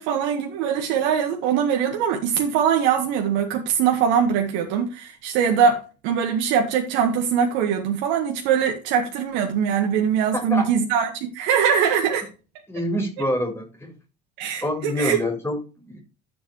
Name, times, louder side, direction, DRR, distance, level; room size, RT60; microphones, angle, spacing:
voice 1, 0.0-12.3 14.4-15.2, right 7 dB, 65° right, 1.6 m, -22 dB
voice 2, 10.3-10.7 12.7-13.9 14.6-16.0, equal, 10° left, 6.9 m, -26 dB
12.5 x 7.9 x 3.2 m
hypercardioid pair, 65°, 21 cm